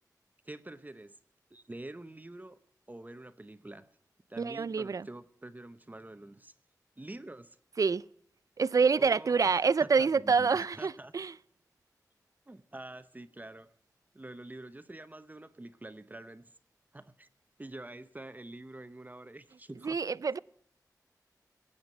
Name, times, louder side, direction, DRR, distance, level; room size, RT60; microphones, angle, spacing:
voice 1, 0.4-1.2 1.5-2.6 2.9-3.9 4.3-6.5 7.0-7.6 9.0-11.1 12.5-13.8 14.1-16.5 16.9-17.3 17.6-20.0, right 2 dB, 25° right, 0.8 m, -46 dB
voice 2, 4.4-5.0 7.8-8.0 8.6-11.3 19.8-20.4, right 5 dB, 60° right, 0.4 m, -27 dB
16.5 x 9.0 x 5.5 m
wide cardioid pair, 55°, 7 cm